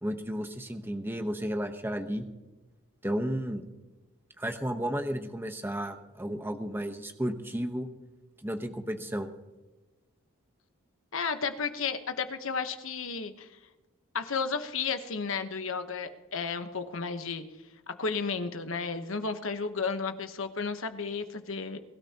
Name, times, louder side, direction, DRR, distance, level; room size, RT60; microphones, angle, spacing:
voice 1, 0.0-2.3 3.0-3.6 4.4-7.9 8.4-9.3, equal, 10° right, 6 dB, 1.0 m, -33 dB
voice 2, 11.1-13.5 14.1-17.4 17.9-21.8, left 5 dB, 70° left, 8 dB, 1.1 m, -33 dB
22.5 x 13.0 x 2.9 m, 1.1 s
head